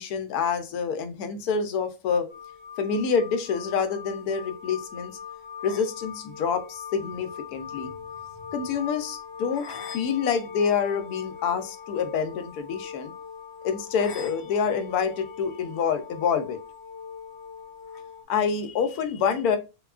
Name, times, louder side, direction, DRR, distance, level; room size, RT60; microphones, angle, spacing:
voice 1, 0.0-2.3 2.8-5.2 5.6-7.9 8.5-13.1 13.6-16.6 18.3-19.6, left 6 dB, 90° left, 8 dB, 1.1 m, -27 dB
sound 1, 2.3-18.2, left 7 dB, 60° left, 0.8 m, -41 dB
3.4 x 2.2 x 2.3 m, 0.29 s
omnidirectional pair, 1.5 m